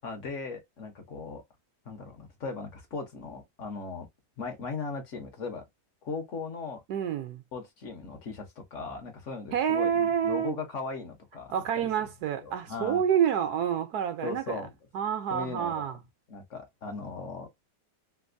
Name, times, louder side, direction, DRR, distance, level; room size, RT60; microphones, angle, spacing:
voice 1, 0.0-1.4 1.8-4.1 4.4-5.6 6.0-6.8 7.5-11.9 12.4-13.0 14.2-14.7 15.3-15.9 16.3-17.5, left 4 dB, 50° left, 1.2 m, -38 dB
voice 2, 6.9-7.4 9.5-10.6 11.5-14.6 14.9-16.0, right 8 dB, 70° right, 1.2 m, -28 dB
3.4 x 2.6 x 2.5 m
omnidirectional pair, 1.8 m